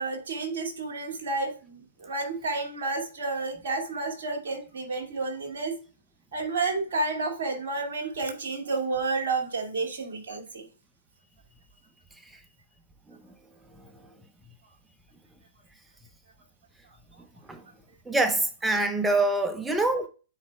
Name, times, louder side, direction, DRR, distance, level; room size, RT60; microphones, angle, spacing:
voice 1, 0.0-5.7 6.3-10.7 19.7-19.8, right 3 dB, 60° right, 2.4 m, -31 dB
voice 2, 18.1-20.1, right 2 dB, 10° right, 1.0 m, -25 dB
9.8 x 4.5 x 2.4 m
hypercardioid pair, 120°, 0 cm